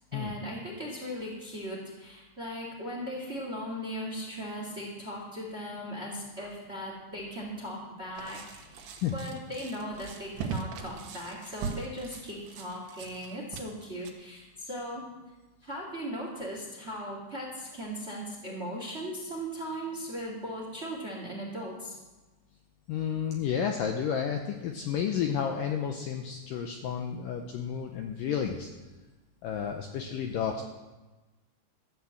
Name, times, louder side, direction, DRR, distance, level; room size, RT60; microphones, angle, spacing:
voice 1, 0.1-15.0 15.6-22.0, equal, 25° right, -1 dB, 1.5 m, -38 dB
sound 1, 8.2-14.1, right 6 dB, 85° right, 3.4 m, -40 dB
voice 2, 22.9-28.7 29.4-30.6, left 8 dB, 75° left, 4 dB, 2.1 m, -31 dB
14.0 x 8.6 x 7.1 m, 1.2 s
omnidirectional pair, 4.7 m